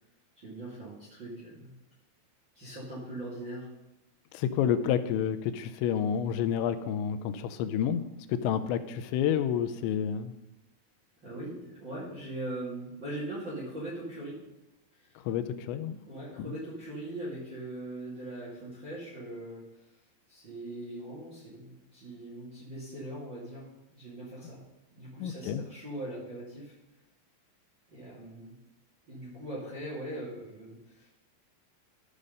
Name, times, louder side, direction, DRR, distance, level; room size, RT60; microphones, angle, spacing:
voice 1, 0.4-1.7 2.5-3.7 11.2-14.4 14.9-15.2 16.0-19.6 20.3-24.6 24.9-26.7 27.9-28.6 29.0-31.1, right 1 dB, 30° right, -7 dB, 2.6 m, -41 dB
voice 2, 4.3-8.0 8.3-10.3 15.3-16.0 25.2-25.6, left 8 dB, 85° left, 11 dB, 3.0 m, -29 dB
14.0 x 5.1 x 5.4 m, 0.97 s
omnidirectional pair, 5.2 m